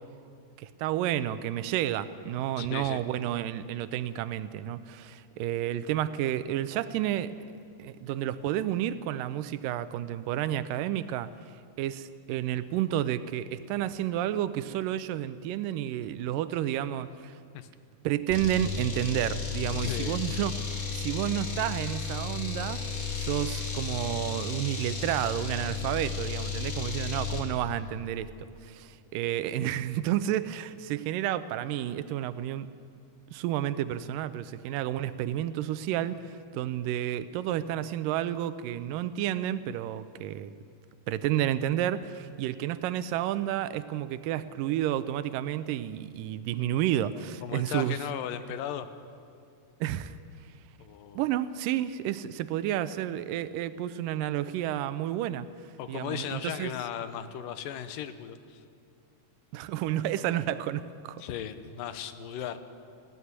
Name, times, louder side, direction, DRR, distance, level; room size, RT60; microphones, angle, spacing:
voice 1, 0.6-7.3 7.8-11.3 11.8-17.4 18.0-20.5 20.9-22.8 23.2-28.3 28.6-32.7 33.3-40.5 41.1-48.0 49.8-50.2 51.2-55.5 55.9-56.7 59.5-61.2, right 12 dB, 90° right, 13 dB, 2.4 m, -31 dB
voice 2, 2.6-3.0 17.5-17.7 19.8-20.2 47.4-48.9 50.8-51.2 55.8-58.6 61.2-62.6, left 10 dB, 85° left, 11 dB, 2.7 m, -36 dB
sound 1, 18.3-27.5, left 5 dB, 70° left, 4.5 m, -34 dB
19.0 x 17.0 x 9.6 m, 2.4 s
omnidirectional pair, 3.8 m